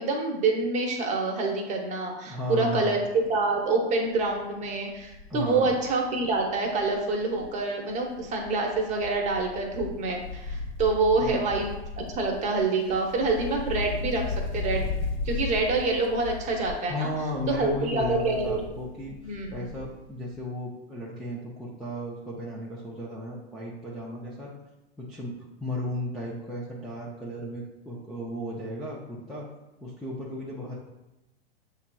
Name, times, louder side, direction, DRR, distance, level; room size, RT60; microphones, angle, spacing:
voice 1, 0.0-3.0 3.3-11.7 12.2-14.8 15.2-17.1 17.5-18.6 19.2-19.7, right 3 dB, 25° right, 1 dB, 0.8 m, -26 dB
voice 2, 2.3-3.0 5.3-5.8 11.2-11.6 16.9-24.5 25.0-25.3 25.6-29.5 29.8-30.8, equal, ahead, -8 dB, 0.3 m, -35 dB
Wind, 3.0-3.3 3.7-3.8 4.1-7.6 7.9-20.1 20.3-20.4, left 3 dB, 40° left, 0.7 m, -36 dB
7.3 x 2.8 x 2.2 m, 0.97 s
hypercardioid pair, 130°, 32 cm